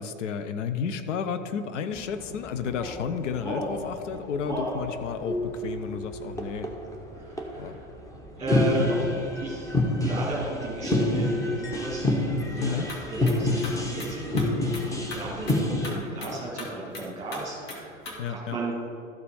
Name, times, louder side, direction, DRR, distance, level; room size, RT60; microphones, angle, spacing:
voice 1, 0.0-6.7 7.6-7.8 12.6-12.9 18.2-18.6, left 6 dB, 65° left, 10 dB, 0.7 m, -32 dB
sound 1, 1.9-15.9, left 1 dB, 10° left, 1.2 m, -29 dB
voice 2, 7.2-7.9 8.4-9.1 9.4-9.7 10.0-12.3 12.5-14.3 14.8-18.9, right 2 dB, 15° right, -6 dB, 2.0 m, -34 dB
sound 2, 12.7-18.2, left 2 dB, 50° left, 2.3 m, -40 dB
13.5 x 4.9 x 4.8 m, 2.6 s
figure-of-eight pair, 90°, 39 cm